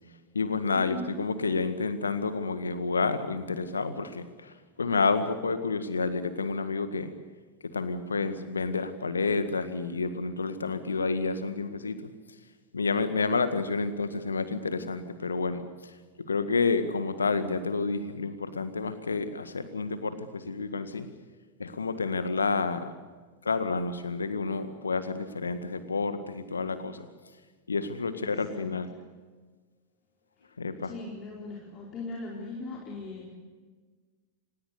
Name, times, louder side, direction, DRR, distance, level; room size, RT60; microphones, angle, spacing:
voice 1, 0.3-7.1 7.6-12.0 12.7-15.6 16.3-21.1 21.6-22.9 23.4-27.1 27.7-28.9 30.6-30.9, left 4 dB, 75° left, 11 dB, 1.8 m, -29 dB
voice 2, 28.1-28.7 30.8-33.3, left 3 dB, 30° left, -3 dB, 4.5 m, -40 dB
26.0 x 20.0 x 6.8 m, 1.4 s
figure-of-eight pair, 90°, 0 cm